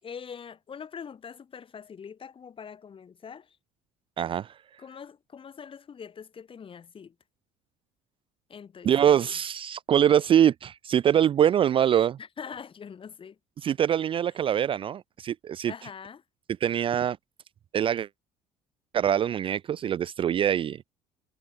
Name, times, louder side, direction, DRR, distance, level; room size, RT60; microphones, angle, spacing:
voice 1, 0.0-3.6 4.8-7.1 8.5-9.3 12.2-13.4 15.6-16.2, left 7 dB, 40° left, 4.2 m, -43 dB
voice 2, 4.2-4.5 8.8-12.2 13.6-15.7 16.6-17.2 17.7-18.1 18.9-20.8, right 9 dB, 40° right, 0.4 m, -23 dB
supercardioid pair, 80°, 14 cm